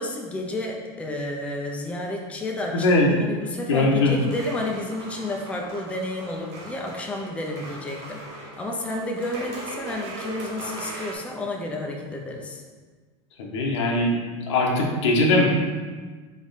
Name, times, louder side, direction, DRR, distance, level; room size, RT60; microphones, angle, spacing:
voice 1, 0.0-2.9 3.3-12.6, left 1 dB, 10° left, 0 dB, 0.5 m, -31 dB
voice 2, 2.7-3.1 3.7-4.1 13.4-14.2 14.5-15.4, left 2 dB, 80° left, -1 dB, 1.0 m, -20 dB
sound 1, 4.2-11.1, right 2 dB, 75° right, 1.2 m, -39 dB
3.6 x 3.6 x 4.0 m, 1.4 s
supercardioid pair, 120°, 15 cm